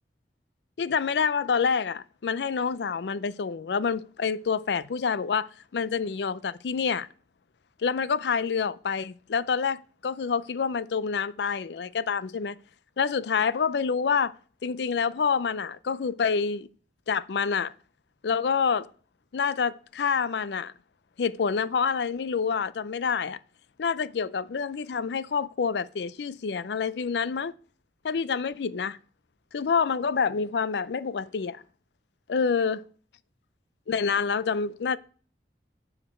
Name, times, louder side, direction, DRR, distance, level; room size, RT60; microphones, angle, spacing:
voice 1, 0.8-7.1 7.8-12.6 13.0-14.3 14.6-16.7 17.1-17.7 18.2-18.9 19.3-20.7 21.2-23.4 23.8-27.5 28.0-29.0 29.5-31.6 32.3-32.9 33.9-35.0, left 6 dB, 70° left, 0.4 m, -27 dB
7.4 x 4.9 x 6.4 m
head